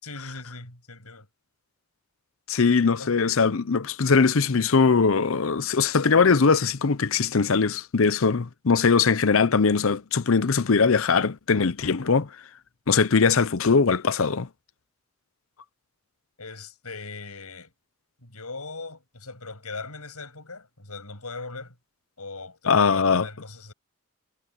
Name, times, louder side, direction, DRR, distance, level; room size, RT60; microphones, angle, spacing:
voice 1, 0.0-1.3 2.9-3.2 16.4-17.7 18.2-21.8 22.2-23.7, left 3 dB, 85° left, 7.5 m, -39 dB
voice 2, 2.5-12.3 12.9-14.5 22.7-23.2, left 5 dB, 65° left, 0.7 m, -21 dB
head